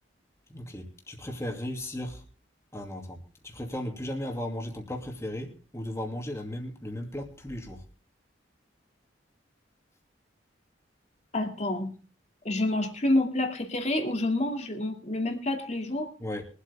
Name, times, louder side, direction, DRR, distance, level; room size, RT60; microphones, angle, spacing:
voice 1, 0.5-2.2 2.7-7.8 16.2-16.4, left 1 dB, 15° left, 2 dB, 2.5 m, -36 dB
voice 2, 11.3-11.9 12.4-16.1, left 1 dB, 35° left, 3 dB, 2.4 m, -28 dB
22.5 x 8.3 x 3.5 m, 0.37 s
head